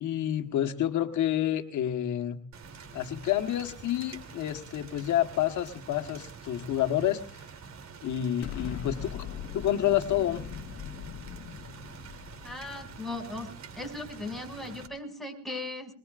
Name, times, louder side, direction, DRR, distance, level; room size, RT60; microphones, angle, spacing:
voice 1, 0.0-2.4 2.9-7.2 8.0-9.3 9.5-10.5, left 11 dB, 75° left, 5 dB, 1.4 m, -29 dB
Rain, 2.5-14.9, right 5 dB, 65° right, 3.0 m, -47 dB
Explosion, 8.4-13.6, left 9 dB, 55° left, 1.3 m, -41 dB
voice 2, 12.4-13.5 13.8-15.9, left 2 dB, ahead, 1 dB, 6.4 m, -38 dB
23.0 x 22.5 x 2.5 m, 0.41 s
cardioid pair, 90°, 30 cm